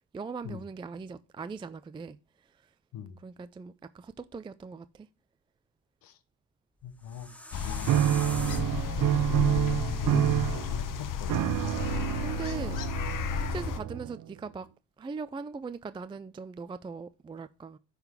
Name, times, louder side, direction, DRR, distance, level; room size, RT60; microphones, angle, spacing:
voice 1, 0.1-2.7 3.2-5.1 11.8-13.1 13.4-14.7 15.0-17.8, right 5 dB, 15° right, 0.3 m, -40 dB
voice 2, 6.8-7.3 7.6-11.4, left 8 dB, 90° left, 1.2 m, -42 dB
sound 1, 6.8-11.9, equal, 5° left, 1.2 m, -41 dB
sound 2, 7.5-13.8, left 8 dB, 65° left, 0.9 m, -33 dB
sound 3, 7.9-14.3, right 12 dB, 65° right, 0.6 m, -28 dB
10.0 x 4.0 x 5.7 m
cardioid pair, 115°, 34 cm